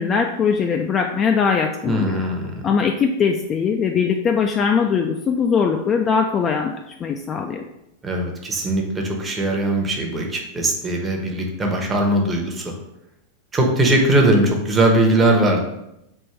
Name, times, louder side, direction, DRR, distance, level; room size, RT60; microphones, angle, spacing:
voice 1, 0.0-2.2 2.6-7.7, left 6 dB, 30° left, 3 dB, 0.3 m, -21 dB
voice 2, 1.8-2.7 8.0-12.6 13.5-15.6, right 1 dB, 20° right, 1 dB, 0.9 m, -20 dB
3.5 x 2.6 x 4.4 m, 0.87 s
hypercardioid pair, 100°, 0 cm